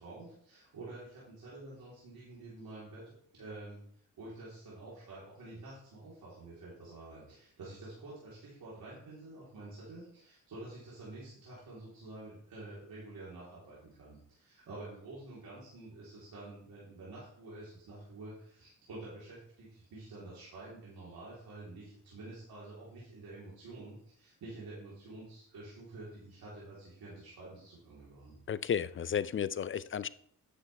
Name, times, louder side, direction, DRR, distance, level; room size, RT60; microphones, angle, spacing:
voice 1, 0.0-3.0 3.3-3.8 4.2-28.4, right 2 dB, 75° right, 3.6 m, -48 dB
voice 2, 28.5-30.1, left 8 dB, 35° left, 0.5 m, -33 dB
10.0 x 6.8 x 3.4 m
supercardioid pair, 55°, 36 cm